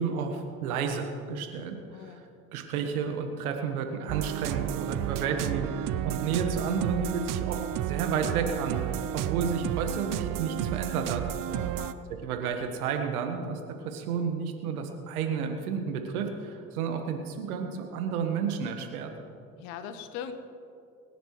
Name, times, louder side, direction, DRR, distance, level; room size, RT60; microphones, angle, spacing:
voice 1, 0.0-2.2 2.5-11.2 12.2-19.1, right 6 dB, 85° right, 5 dB, 1.6 m, -31 dB
voice 2, 1.9-2.2 11.5-12.0 19.6-20.3, left 8 dB, 75° left, 9 dB, 1.3 m, -40 dB
sound 1, 4.1-11.9, right 12 dB, 50° right, 0.7 m, -32 dB
24.5 x 10.0 x 3.2 m, 2.5 s
hypercardioid pair, 60°, 43 cm